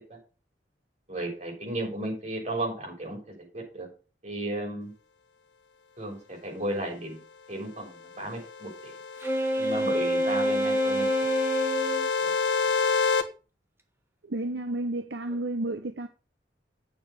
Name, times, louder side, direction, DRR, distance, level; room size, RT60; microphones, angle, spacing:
voice 1, 1.1-3.2 3.5-3.9 4.2-4.9 6.0-7.2 7.5-8.9 9.6-11.1 15.3-15.4, right 1 dB, 40° right, 6.9 m, -34 dB
sound 1, 8.3-13.2, left 5 dB, 75° left, 1.5 m, -29 dB
Wind instrument woodwind instrument, 9.2-12.1, equal, 15° right, 1.5 m, -26 dB
voice 2, 14.3-16.1, right 2 dB, 70° right, 0.9 m, -31 dB
9.0 x 7.3 x 6.7 m
head